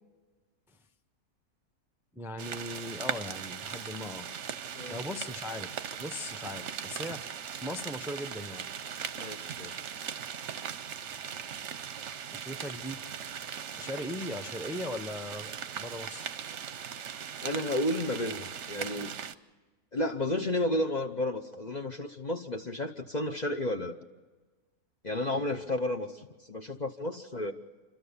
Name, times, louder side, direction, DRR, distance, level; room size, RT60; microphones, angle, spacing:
voice 1, 2.1-4.3 4.9-5.7 6.0-7.3 7.6-8.7 12.3-13.0 13.8-16.3, left 1 dB, ahead, 7 dB, 0.7 m, -39 dB
sound 1, 2.4-19.3, right 8 dB, 60° right, 1.0 m, -39 dB
voice 2, 9.1-9.9 17.4-19.1 19.9-24.0 25.0-27.5, left 1 dB, 35° left, 3 dB, 0.9 m, -32 dB
28.5 x 13.5 x 7.0 m, 1.3 s
omnidirectional pair, 1.6 m